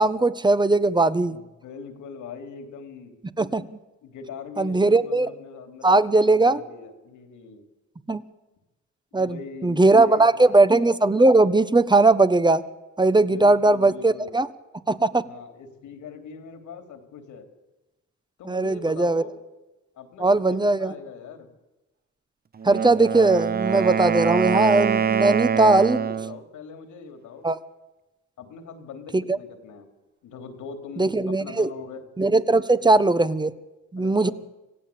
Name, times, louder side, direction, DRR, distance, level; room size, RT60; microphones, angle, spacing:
voice 1, 0.0-1.4 3.4-3.7 4.6-5.3 5.8-6.6 8.1-8.2 9.1-12.6 13.0-14.5 14.9-15.2 18.5-19.2 20.2-20.9 22.6-26.0 27.4-27.6 29.1-29.4 31.0-31.7 32.2-33.5 33.9-34.3, right 2 dB, 15° right, 13 dB, 1.1 m, -19 dB
voice 2, 1.3-3.2 4.0-6.0 6.3-7.7 9.1-10.6 13.1-14.4 15.3-17.5 18.4-19.4 20.0-21.5 25.5-27.5 28.4-29.9 30.2-32.1 34.0-34.3, left 5 dB, 80° left, 7 dB, 3.4 m, -41 dB
Wind instrument woodwind instrument, 22.6-26.4, right 7 dB, 30° right, 0.8 m, -24 dB
26.5 x 16.5 x 8.7 m, 1.1 s
cardioid pair, 90°, 30 cm